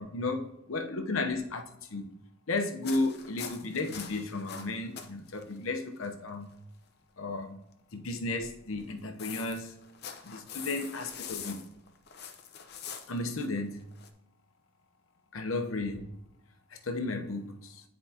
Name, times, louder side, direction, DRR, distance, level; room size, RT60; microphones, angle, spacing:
voice 1, 0.0-2.1 2.5-6.5 7.2-7.6 7.9-9.7 10.2-11.6 13.1-13.9 15.3-16.0 16.8-17.8, left 2 dB, 85° left, 0.9 m, -34 dB
sound 1, 2.8-5.1 5.4-5.6 6.0-6.1 8.8-14.1, left 7 dB, 50° left, 0.7 m, -43 dB
9.8 x 4.7 x 2.9 m
head